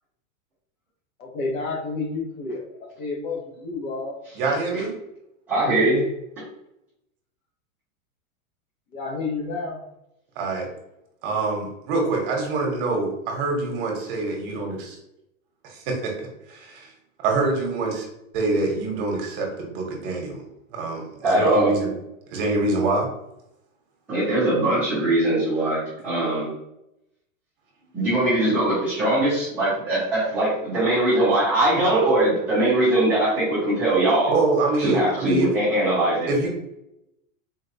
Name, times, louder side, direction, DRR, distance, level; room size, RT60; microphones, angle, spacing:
voice 1, 1.2-4.2 8.9-9.8, left 3 dB, 75° left, -1 dB, 1.3 m, -30 dB
voice 2, 4.4-4.9 10.4-10.7 11.2-15.0 15.6-16.1 16.5-16.9 17.2-18.1 18.3-20.4 20.7-21.9 22.3-23.1 34.3-35.5 36.3-36.5, right 3 dB, 40° right, 1 dB, 0.9 m, -25 dB
voice 3, 5.5-6.0 21.2-21.7 24.1-26.5 27.9-34.3 34.8-36.3, right 1 dB, 5° right, -16 dB, 0.4 m, -21 dB
4.0 x 2.2 x 2.7 m, 0.85 s
supercardioid pair, 165°, 41 cm